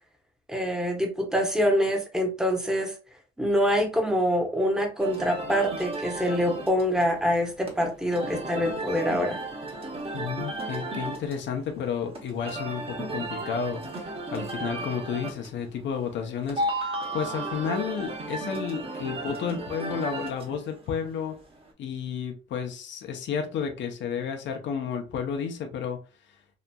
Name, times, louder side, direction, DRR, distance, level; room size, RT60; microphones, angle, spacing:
voice 1, 0.5-2.9 3.4-9.4, equal, 5° right, 0.8 m, -25 dB
sound 1, 5.0-21.7, right 2 dB, 30° right, 0.9 m, -35 dB
voice 2, 10.1-21.4 21.8-26.0, left 7 dB, 65° left, 0.6 m, -32 dB
2.8 x 2.4 x 2.2 m
cardioid pair, 90°, 20 cm